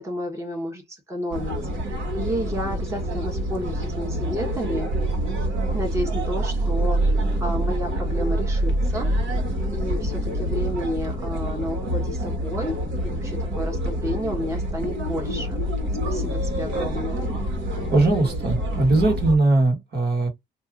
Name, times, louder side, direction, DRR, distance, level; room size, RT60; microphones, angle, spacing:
voice 1, 0.0-1.5 1.8-4.9 5.7-9.1 9.7-12.8 13.0-15.6 16.0-17.3, equal, 15° right, 1.1 m, -31 dB
sound 1, 1.3-19.4, right 1 dB, 75° right, 1.4 m, -26 dB
voice 2, 17.9-20.3, right 2 dB, 55° right, 1.6 m, -20 dB
2.6 x 2.5 x 3.5 m
cardioid pair, 90°, 20 cm